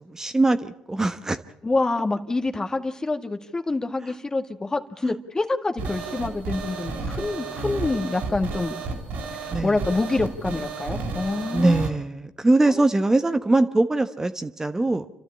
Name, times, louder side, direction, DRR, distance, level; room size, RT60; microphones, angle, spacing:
voice 1, 0.0-1.4 5.0-5.1 9.5-9.8 11.5-15.1, right 2 dB, 20° right, 9 dB, 1.1 m, -22 dB
voice 2, 1.6-8.8 9.6-11.8 12.7-12.8, left 3 dB, 25° left, 6 dB, 1.9 m, -26 dB
sound 1, 5.8-11.9, right 3 dB, 80° right, 3.9 m, -32 dB
28.5 x 12.5 x 8.6 m, 0.78 s
supercardioid pair, 60°, 3 cm